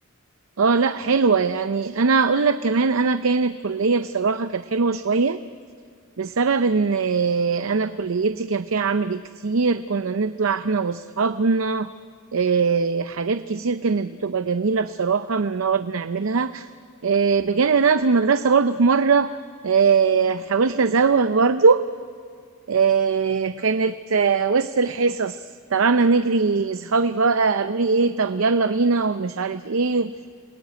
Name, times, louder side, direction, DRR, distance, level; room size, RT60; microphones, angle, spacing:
voice 1, 0.6-5.4 6.2-11.9 12.3-16.7 17.0-19.3 19.6-21.8 22.7-25.4 25.7-30.1, right 4 dB, 70° right, 12 dB, 0.6 m, -21 dB
28.0 x 20.5 x 9.3 m, 2.2 s
head